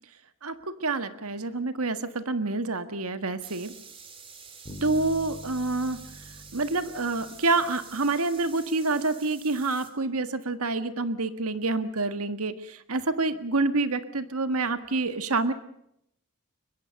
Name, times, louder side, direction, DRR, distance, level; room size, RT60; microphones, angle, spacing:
voice 1, 0.4-3.7 4.8-6.0 6.5-15.5, right 3 dB, 85° right, 11 dB, 1.6 m, -27 dB
sound 1, 3.4-9.9, right 6 dB, 25° right, 2.7 m, -48 dB
sound 2, 4.7-8.4, equal, 30° left, 3.2 m, -46 dB
23.5 x 21.5 x 6.5 m, 0.74 s
head